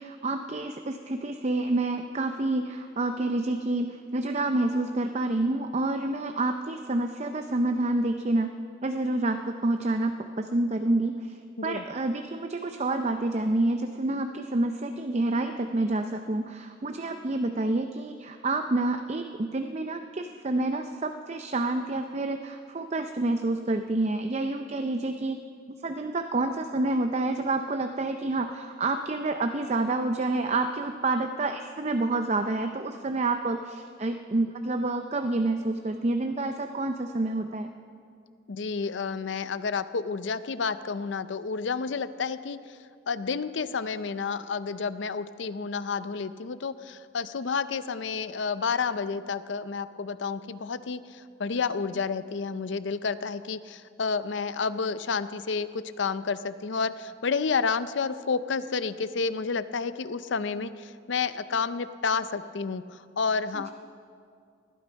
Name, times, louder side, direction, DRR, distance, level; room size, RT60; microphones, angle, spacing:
voice 1, 0.0-8.5 8.8-25.4 25.7-37.7 63.5-63.7, right 2 dB, 35° right, 6 dB, 0.5 m, -28 dB
voice 2, 38.5-42.8 43.1-63.7, left 5 dB, 65° left, 14 dB, 0.5 m, -30 dB
20.0 x 12.5 x 5.2 m, 2.3 s
head